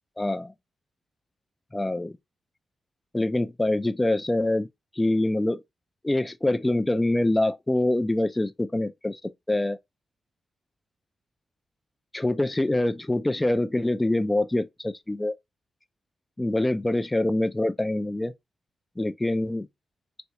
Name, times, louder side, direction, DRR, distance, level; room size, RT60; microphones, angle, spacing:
voice 1, 0.2-0.5 1.7-2.1 3.1-4.7 5.0-5.6 6.0-9.2 9.5-9.8 12.1-15.4 16.4-18.3 19.0-19.7, left 1 dB, 15° left, 0.4 m, -25 dB
4.2 x 2.3 x 2.9 m
cardioid pair, 105°, 0 cm